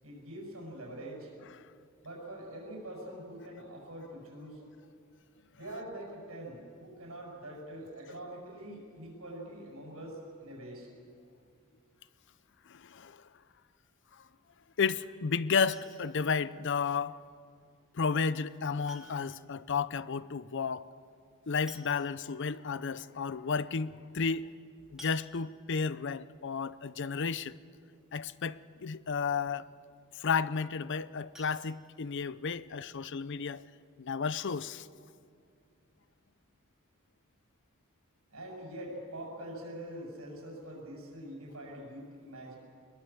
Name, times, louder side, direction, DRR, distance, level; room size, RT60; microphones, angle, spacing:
voice 1, 0.0-1.3 2.0-4.6 5.5-10.9 38.3-42.6, right 1 dB, 85° right, 6.7 m, -44 dB
voice 2, 12.7-13.2 14.8-17.2 17.9-20.9 21.5-24.5 24.9-27.5 28.1-29.7 30.2-33.6 34.0-34.9, left 5 dB, 60° left, 0.6 m, -32 dB
sound 1, 15.7-16.3 17.8-17.9 18.9-19.5 19.8-19.9 20.2-20.3 21.3-21.4 21.7-22.4 22.9-23.0 23.4-23.6 25.0-25.8 31.3-32.5 32.9-33.0 33.4-33.5 33.9-34.0, right 1 dB, 5° right, 2.8 m, -54 dB
22.0 x 21.5 x 7.3 m
head